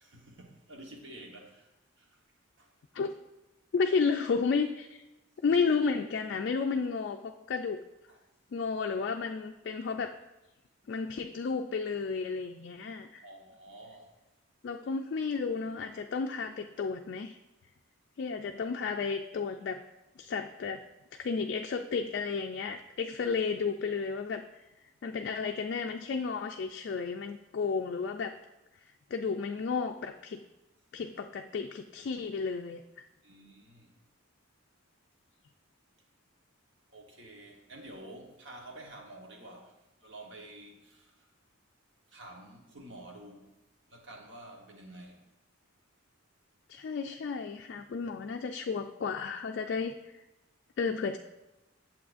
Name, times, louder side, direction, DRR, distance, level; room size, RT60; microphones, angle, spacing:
voice 1, 0.0-1.7 2.6-2.7 8.1-8.2 13.2-14.1 33.2-33.9 36.9-39.7 40.0-41.1 42.1-43.5 43.9-45.2, right 1 dB, 60° right, 1 dB, 1.2 m, -49 dB
voice 2, 3.7-5.0 5.4-7.8 8.5-10.1 10.9-13.2 14.6-17.4 18.2-19.8 20.2-20.8 21.2-24.4 25.0-28.4 29.1-30.4 30.9-33.1 46.7-49.9 50.8-51.2, left 5 dB, 55° left, 4 dB, 0.3 m, -32 dB
8.5 x 7.4 x 2.5 m, 1.0 s
head